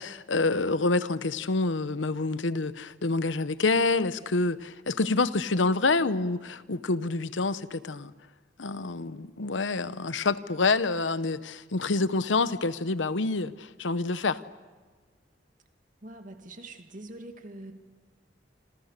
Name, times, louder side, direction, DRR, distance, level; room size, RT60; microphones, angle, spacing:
voice 1, 0.0-8.1 8.6-14.4, left 3 dB, 90° left, 0.9 m, -27 dB
voice 2, 16.0-17.7, right 1 dB, 45° right, 2.5 m, -44 dB
28.0 x 26.5 x 6.7 m
head